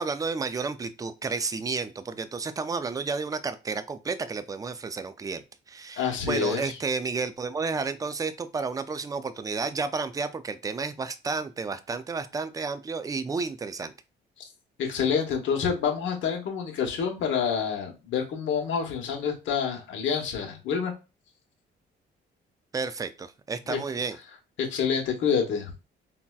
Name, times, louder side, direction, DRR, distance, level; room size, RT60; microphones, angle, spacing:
voice 1, 0.0-13.9 22.7-24.2, right 4 dB, 20° right, 12 dB, 0.3 m, -31 dB
voice 2, 6.0-6.8 14.8-20.9 23.7-23.8 24.6-25.7, left 6 dB, 75° left, 1 dB, 0.9 m, -27 dB
4.0 x 2.1 x 2.3 m, 0.29 s
cardioid pair, 90°, 20 cm